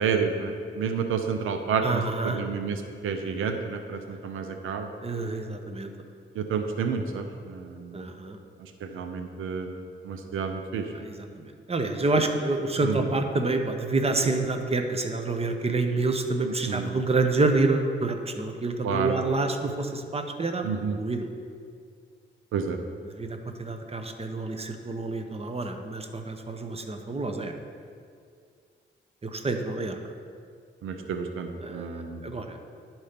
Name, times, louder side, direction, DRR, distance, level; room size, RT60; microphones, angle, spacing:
voice 1, 0.0-4.9 6.4-8.0 8.6-9.7 10.0-10.9 12.8-13.1 16.4-16.9 18.8-19.1 20.6-21.0 22.5-22.8 30.8-32.2, right 5 dB, 90° right, 6 dB, 0.6 m, -30 dB
voice 2, 1.8-2.4 5.0-5.9 7.9-8.4 10.9-21.3 23.2-27.5 29.2-30.0 31.6-32.6, right 3 dB, 30° right, 5 dB, 0.9 m, -28 dB
11.0 x 4.4 x 5.2 m, 2.3 s
cardioid pair, 60°, 20 cm